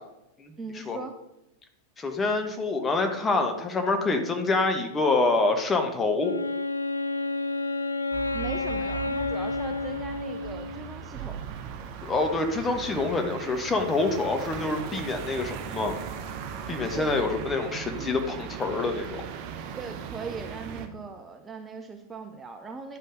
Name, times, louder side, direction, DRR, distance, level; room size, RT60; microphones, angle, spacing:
voice 1, 0.6-1.1 8.3-11.5 16.9-17.2 19.8-23.0, right 4 dB, 15° right, 5 dB, 0.6 m, -39 dB
voice 2, 2.0-6.3 12.0-15.9 16.7-19.2, left 3 dB, 20° left, 5 dB, 1.2 m, -26 dB
Wind instrument woodwind instrument, 6.2-11.0, left 3 dB, 80° left, 0.4 m, -30 dB
sound 1, 8.1-20.9, right 8 dB, 45° right, 0.8 m, -38 dB
10.5 x 5.4 x 3.8 m, 0.86 s
figure-of-eight pair, 90°, 0 cm